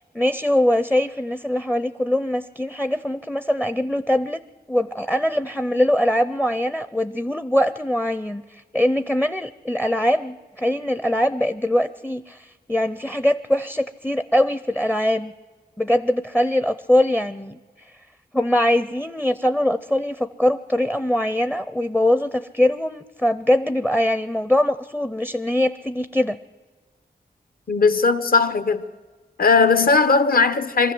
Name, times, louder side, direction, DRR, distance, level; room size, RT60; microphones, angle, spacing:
voice 1, 0.1-4.4 4.7-8.4 8.7-15.3 15.8-17.6 18.3-26.4, left 1 dB, 5° left, 0.5 m, -22 dB
voice 2, 27.7-28.8 29.4-30.9, left 4 dB, 60° left, 1.0 m, -18 dB
23.5 x 14.5 x 7.7 m
wide cardioid pair, 120°, 17 cm